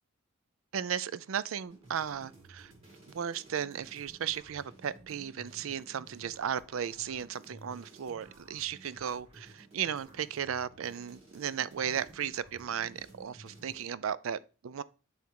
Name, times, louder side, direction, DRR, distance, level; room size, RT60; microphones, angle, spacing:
voice 1, 0.7-2.7 3.1-14.8, right 8 dB, 75° right, 0.4 m, -35 dB
sound 1, 1.6-13.9, right 2 dB, 30° right, 2.0 m, -55 dB
9.1 x 3.5 x 4.7 m
head